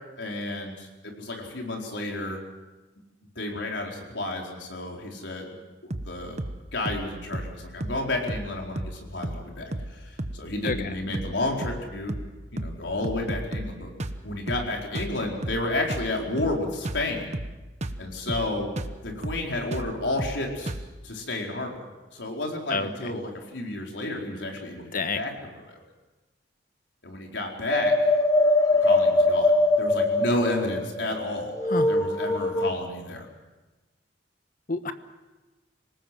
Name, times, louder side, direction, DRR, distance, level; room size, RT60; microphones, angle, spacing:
voice 1, 0.2-2.4 3.4-5.6 6.0-6.4 6.7-10.0 10.3-12.1 12.5-13.9 14.2-17.2 18.0-18.7 19.0-20.7 21.0-21.7 22.1-25.8 27.0-27.9 28.8-29.5 29.8-33.3, left 2 dB, 80° left, 1 dB, 4.6 m, -31 dB
sound 1, 5.9-6.1 6.4-6.6 6.9-7.1 7.3-7.6 7.8-8.0 8.3-8.5 8.8-9.0 9.2-9.5 9.7-9.9 10.2-10.4 10.7-10.9 11.1-11.4 11.6-11.8 12.1-12.3 12.6-12.8 13.0-13.7 14.0-14.2 14.5-14.7 15.0-15.2 15.4-15.6 15.9-16.1 16.4-16.6 16.9-17.1 17.3-17.6 17.8-18.0 18.3-18.5 18.8-19.0 19.2-19.5 19.7-19.9 20.2-20.4 20.7-20.9, right 1 dB, 40° right, 1.1 m, -33 dB
voice 2, 10.6-10.9 22.7-23.1 24.9-25.2 31.7-31.9 34.7-34.9, left 3 dB, 50° left, 9 dB, 1.4 m, -29 dB
sound 2, 27.7-32.7, left 2 dB, 15° left, 1.2 m, -22 dB
26.0 x 18.5 x 7.7 m, 1.2 s
head